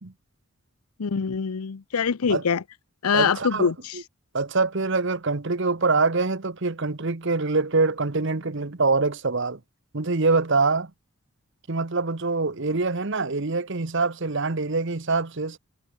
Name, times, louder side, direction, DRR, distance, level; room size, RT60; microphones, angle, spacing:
voice 1, 1.0-2.6 3.0-4.0, left 6 dB, 85° left, 0.6 m, -24 dB
voice 2, 3.1-4.0 4.3-9.6 9.9-10.9 11.7-15.6, right 3 dB, 55° right, 1.1 m, -24 dB
head